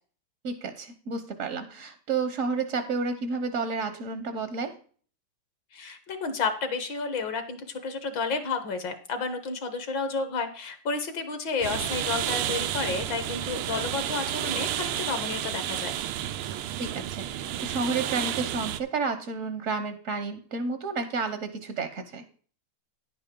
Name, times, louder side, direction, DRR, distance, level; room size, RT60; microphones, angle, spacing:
voice 1, 0.4-4.7 16.8-22.2, right 4 dB, 55° right, 9 dB, 0.9 m, -31 dB
voice 2, 5.7-15.9, left 4 dB, 60° left, 8 dB, 1.8 m, -31 dB
sound 1, 11.6-18.8, right 11 dB, 90° right, 1.6 m, -31 dB
10.5 x 8.6 x 3.7 m, 0.43 s
omnidirectional pair, 2.4 m